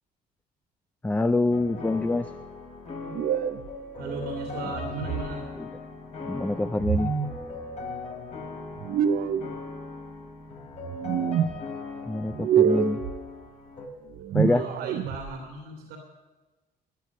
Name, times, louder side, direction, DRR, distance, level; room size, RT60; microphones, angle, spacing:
voice 1, 1.0-2.3 5.6-5.7 6.2-7.1 12.1-13.0 14.3-14.7, left 2 dB, 10° left, 10 dB, 0.4 m, -25 dB
sound 1, 1.5-13.9, left 3 dB, 40° left, 3.0 m, -39 dB
sound 2, 3.1-3.7 4.7-5.4 6.8-7.4 8.8-9.5 10.8-11.5 12.3-13.1 14.1-15.3, right 8 dB, 60° right, 0.8 m, -26 dB
voice 2, 4.0-5.6 14.5-16.0, right 2 dB, 85° right, 2 dB, 2.5 m, -37 dB
13.0 x 8.8 x 9.6 m, 1.2 s
cardioid pair, 110°, 17 cm